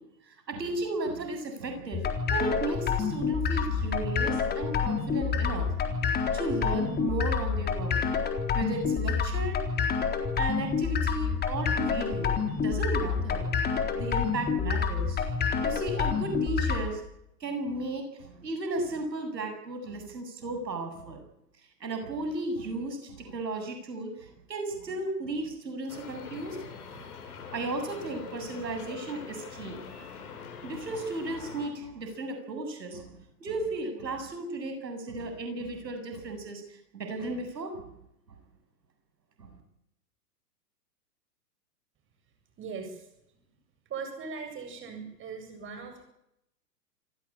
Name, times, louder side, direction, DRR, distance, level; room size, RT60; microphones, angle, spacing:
voice 1, 0.3-8.1 8.5-9.6 10.4-13.5 13.9-15.3 15.6-17.0 17.4-21.2 21.8-26.6 26.9-29.8 30.6-37.8 39.4-39.5, right 2 dB, 85° right, 6 dB, 7.7 m, -35 dB
sound 1, 1.9-16.9, left 6 dB, 20° left, 3.9 m, -28 dB
sound 2, 25.9-31.7, left 6 dB, 60° left, 7.3 m, -44 dB
voice 2, 42.6-43.0 43.9-46.0, right 5 dB, 25° right, 5 dB, 7.9 m, -39 dB
27.5 x 16.0 x 8.8 m, 0.79 s
hypercardioid pair, 125°, 49 cm